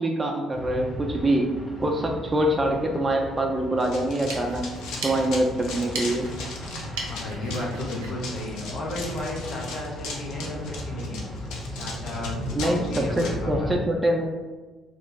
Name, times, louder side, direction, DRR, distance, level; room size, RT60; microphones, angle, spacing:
voice 1, 0.0-4.7 5.0-6.3 12.5-14.3, right 1 dB, 25° right, 1 dB, 0.6 m, -25 dB
sound 1, 0.5-13.7, left 1 dB, 15° left, 1.2 m, -36 dB
Run, 3.8-13.3, left 3 dB, 70° left, 0.6 m, -39 dB
sound 2, 4.0-9.3, right 3 dB, 75° right, 0.6 m, -39 dB
voice 2, 7.0-11.2 11.7-13.7, left 1 dB, 50° left, -3 dB, 1.0 m, -34 dB
3.1 x 2.3 x 3.8 m, 1.3 s
hypercardioid pair, 50°, 0 cm